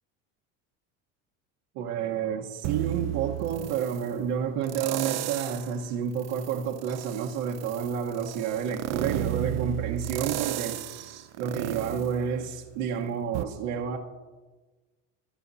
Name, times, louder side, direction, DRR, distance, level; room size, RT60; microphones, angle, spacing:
voice 1, 1.7-14.0, right 7 dB, 85° right, 1.3 m, -30 dB
sound 1, 2.6-4.0 4.7-5.7 6.2-12.9 13.3-13.4, right 14 dB, 50° right, 0.6 m, -33 dB
23.0 x 11.0 x 2.7 m
cardioid pair, 130°, 34 cm